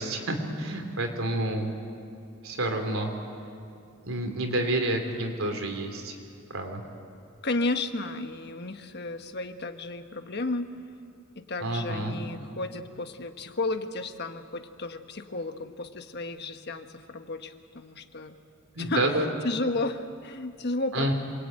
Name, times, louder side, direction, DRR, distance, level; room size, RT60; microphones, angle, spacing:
voice 1, 0.0-1.7 2.4-3.1 4.0-6.2 6.5-6.8 11.6-12.2 18.8-19.3 20.9-21.1, right 1 dB, 70° right, 4 dB, 3.5 m, -29 dB
voice 2, 7.4-10.7 11.3-18.4 18.8-21.1, left 2 dB, 50° left, 7 dB, 1.3 m, -33 dB
27.5 x 22.5 x 9.1 m, 2.4 s
head